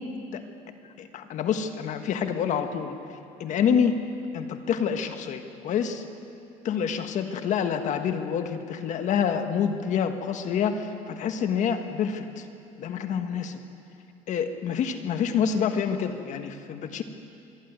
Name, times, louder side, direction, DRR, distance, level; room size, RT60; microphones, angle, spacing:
voice 1, 1.0-3.0 3.4-4.0 4.3-6.0 6.6-12.4 12.8-13.6 14.3-17.0, left 7 dB, 55° left, 7 dB, 1.5 m, -27 dB
26.0 x 11.5 x 9.6 m, 2.6 s
cardioid pair, 115°, 15 cm